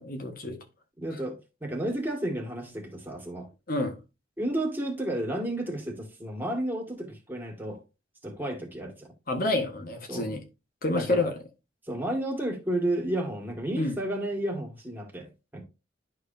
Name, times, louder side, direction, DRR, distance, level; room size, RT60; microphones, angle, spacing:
voice 1, 0.0-0.6 3.7-4.0 9.3-10.4 10.8-11.4 13.8-14.0, left 2 dB, 50° left, 1.5 m, -28 dB
voice 2, 1.0-3.5 4.4-7.8 8.2-9.1 10.1-10.4 10.9-11.3 11.9-15.6, right 1 dB, 10° right, 2.0 m, -32 dB
11.5 x 4.8 x 2.7 m
head